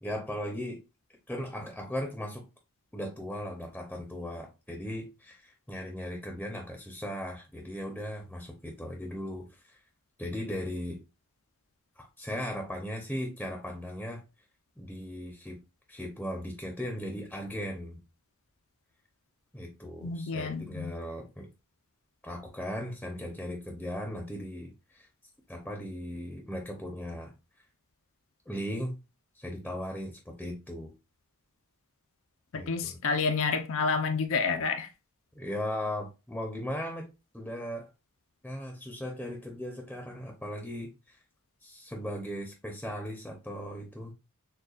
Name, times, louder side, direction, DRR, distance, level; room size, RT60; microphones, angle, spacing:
voice 1, 0.0-0.8 1.3-2.4 2.9-9.8 10.2-11.0 12.0-14.2 14.8-15.6 15.9-18.0 19.5-21.5 22.2-25.1 25.5-27.3 28.5-28.9 29.3-30.9 32.5-33.0 35.4-37.1 37.3-37.9 38.4-41.2 41.6-44.1, equal, 5° left, 0.6 m, -37 dB
voice 2, 20.0-20.9 32.5-34.9, left 4 dB, 65° left, 0.5 m, -29 dB
6.5 x 2.3 x 2.4 m
head